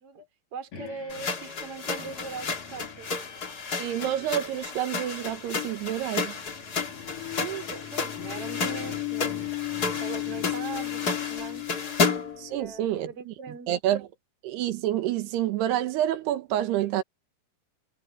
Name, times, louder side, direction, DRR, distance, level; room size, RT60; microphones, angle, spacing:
voice 1, 0.0-3.1 7.4-9.4 10.0-11.7 12.5-13.7, right 5 dB, 40° right, 4.1 m, -40 dB
sound 1, 0.7-12.8, left 14 dB, 60° left, 4.3 m, -38 dB
sound 2, 1.1-12.4, left 4 dB, 35° left, 1.6 m, -32 dB
voice 2, 3.8-6.4 12.4-13.3 13.7-14.1 14.4-17.0, right 12 dB, 85° right, 3.4 m, -28 dB
omnidirectional pair, 4.6 m